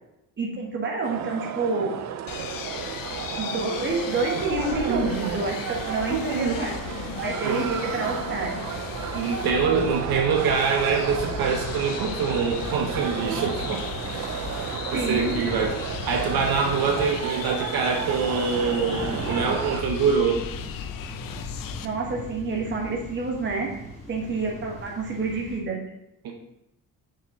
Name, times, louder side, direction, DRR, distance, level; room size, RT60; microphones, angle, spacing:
voice 1, 0.4-1.9 3.3-6.8 7.2-8.5 14.9-15.4 21.8-23.7 24.1-25.8, right 3 dB, 30° right, -1 dB, 1.7 m, -28 dB
sound 1, 1.0-19.8, right 9 dB, 50° right, 0.5 m, -33 dB
sound 2, 2.3-21.9, left 9 dB, 65° left, 0.6 m, -36 dB
voice 2, 4.6-5.3 6.1-6.6 7.4-7.6 9.1-14.3 14.9-15.7 16.1-20.4 26.2-26.3, right 5 dB, 75° right, 2 dB, 1.1 m, -25 dB
sound 3, 8.7-25.6, equal, 20° left, 2.6 m, -40 dB
6.6 x 6.0 x 4.1 m, 0.84 s
cardioid pair, 155°, 36 cm